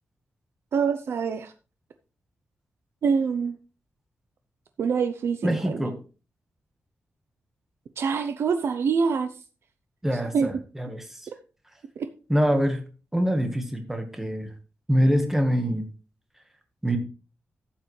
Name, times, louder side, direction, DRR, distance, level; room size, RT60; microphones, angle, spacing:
voice 1, 0.7-1.5 3.0-3.6 4.8-5.8 8.0-9.3 10.1-10.5 12.0-12.1, right 6 dB, 70° right, 9 dB, 0.7 m, -25 dB
voice 2, 5.4-5.9 10.0-11.2 12.3-12.8 13.1-14.5 14.9-15.9 16.8-17.0, equal, 5° right, 5 dB, 1.4 m, -24 dB
12.5 x 8.7 x 3.2 m, 0.35 s
wide cardioid pair, 170°, 5 cm